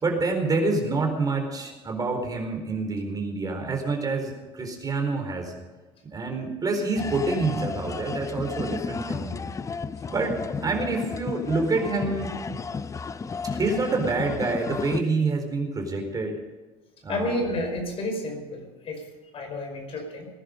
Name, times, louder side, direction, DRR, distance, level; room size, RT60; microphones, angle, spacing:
voice 1, 0.0-5.5 6.1-9.4 10.1-12.4 13.5-16.4 17.0-17.5, right 3 dB, 30° right, 3 dB, 4.2 m, -27 dB
sound 1, 7.0-15.0, left 5 dB, 25° left, 0.6 m, -33 dB
voice 2, 17.1-19.0 19.3-20.3, left 1 dB, 50° left, 4 dB, 5.1 m, -30 dB
19.5 x 11.0 x 5.2 m, 1.3 s
supercardioid pair, 80°, 12 cm